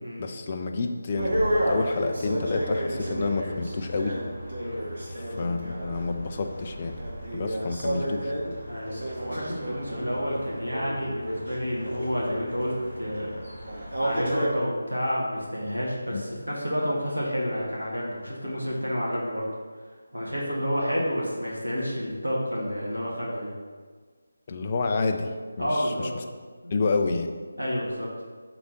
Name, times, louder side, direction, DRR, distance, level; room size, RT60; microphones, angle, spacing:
voice 1, 0.2-4.2 5.1-7.0 7.3-8.3 16.1-16.2 24.5-26.1 26.7-27.3, left 3 dB, 30° left, 5 dB, 0.6 m, -29 dB
sound 1, 1.2-14.5, right 1 dB, 50° right, 2.2 m, -32 dB
voice 2, 8.7-19.5 20.1-23.5 25.6-26.1 26.6-26.8 27.6-28.1, equal, 80° right, -4 dB, 2.0 m, -30 dB
6.6 x 4.0 x 6.2 m, 1.5 s
figure-of-eight pair, 155°, 0 cm